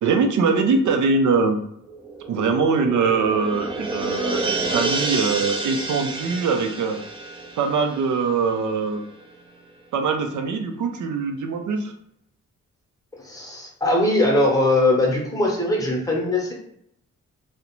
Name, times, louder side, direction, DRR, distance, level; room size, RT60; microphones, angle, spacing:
voice 1, 0.0-1.6 2.3-7.0 7.6-9.0 9.9-11.9, right 4 dB, 70° right, 6 dB, 0.4 m, -22 dB
sound 1, 1.9-8.9 9.2-9.3, right 2 dB, 15° right, 0.4 m, -29 dB
voice 2, 13.2-16.5, left 1 dB, 10° left, -2 dB, 0.8 m, -20 dB
2.4 x 2.1 x 2.9 m, 0.72 s
cardioid pair, 85°, 31 cm